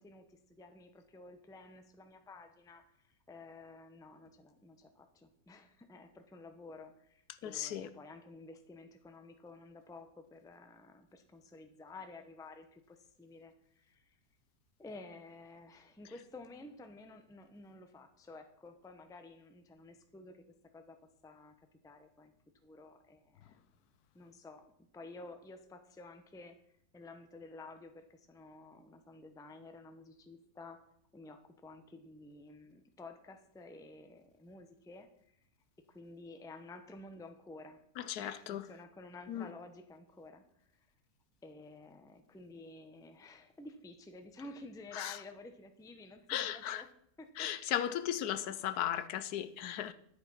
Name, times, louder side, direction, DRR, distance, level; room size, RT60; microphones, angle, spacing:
voice 1, 0.0-14.2 14.8-20.4 20.7-21.0 21.2-21.5 21.8-22.3 22.6-23.6 24.1-26.6 26.9-30.8 31.1-35.1 35.8-37.8 38.2-40.9 41.4-46.9 47.2-47.5 48.3-48.6, left 2 dB, 5° left, 0.6 m, -52 dB
voice 2, 7.4-7.9 38.0-38.6 39.3-39.5 44.9-45.2 46.3-46.8 47.4-49.9, left 11 dB, 80° left, 1.2 m, -36 dB
10.5 x 8.0 x 5.6 m
omnidirectional pair, 1.7 m